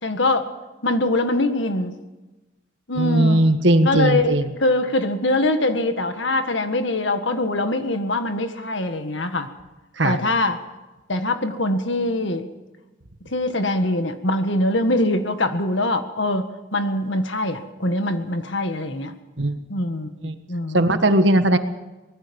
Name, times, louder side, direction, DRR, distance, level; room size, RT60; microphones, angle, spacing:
voice 1, 0.0-0.5 0.8-1.9 2.9-3.5 3.8-4.3 4.6-9.5 10.0-10.6 11.1-12.5 13.3-19.1 19.7-20.9, left 1 dB, 70° left, 8 dB, 1.8 m, -23 dB
voice 2, 3.0-4.5 10.0-10.2 19.4-19.6 20.2-20.3 20.7-21.6, right 1 dB, 65° right, 8 dB, 1.5 m, -18 dB
24.5 x 20.0 x 5.4 m, 1.1 s
head